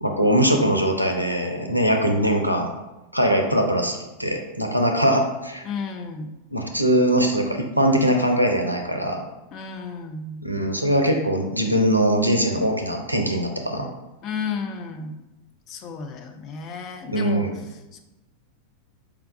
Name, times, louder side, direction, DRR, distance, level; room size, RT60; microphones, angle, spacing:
voice 1, 0.0-2.7 3.1-5.6 6.5-9.2 10.4-13.9 17.1-17.5, equal, 90° right, 3 dB, 0.5 m, -21 dB
voice 2, 5.6-6.3 9.5-10.4 14.2-15.2 15.7-18.0, left 4 dB, 35° left, 5 dB, 0.5 m, -33 dB
4.7 x 2.3 x 3.6 m, 1.0 s
figure-of-eight pair, 90°, 0 cm